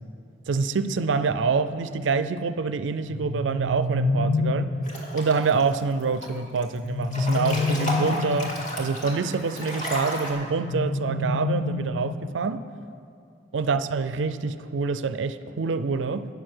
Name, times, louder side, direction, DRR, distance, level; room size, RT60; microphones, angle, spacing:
voice 1, 0.5-4.7 5.1-12.6 13.5-16.3, right 4 dB, 85° right, 12 dB, 0.4 m, -26 dB
sound 1, 3.1-4.9 6.7-8.6 10.5-12.4, left 2 dB, 80° left, 0.7 m, -27 dB
Breathing / Bathtub (filling or washing) / Splash splatter, 4.8-5.6 6.0-6.6 7.0-10.3, equal, 45° left, 2.1 m, -32 dB
9.1 x 6.6 x 7.9 m, 2.5 s
head